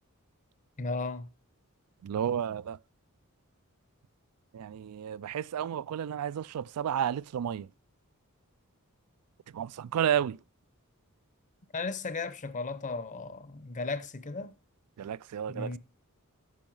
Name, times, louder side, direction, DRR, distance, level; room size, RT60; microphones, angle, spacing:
voice 1, 0.8-1.3 11.7-14.5 15.5-15.8, left 3 dB, 35° left, 0.6 m, -35 dB
voice 2, 2.0-2.8 4.5-7.7 9.5-10.4 15.0-15.8, right 9 dB, 85° right, 0.3 m, -32 dB
9.2 x 5.4 x 5.5 m
head